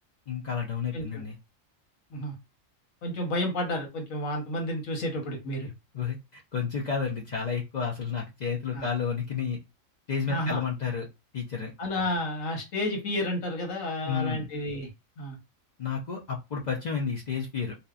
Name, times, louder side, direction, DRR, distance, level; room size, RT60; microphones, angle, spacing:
voice 1, 0.3-1.4 5.9-9.6 10.1-11.1 11.3-11.7 14.0-14.5 15.8-17.8, left 6 dB, 65° left, 0.4 m, -31 dB
voice 2, 3.0-5.7 8.7-8.9 10.3-10.6 11.8-14.9 15.2-15.4, left 1 dB, 85° left, 1.3 m, -31 dB
2.7 x 2.2 x 2.3 m
omnidirectional pair, 1.4 m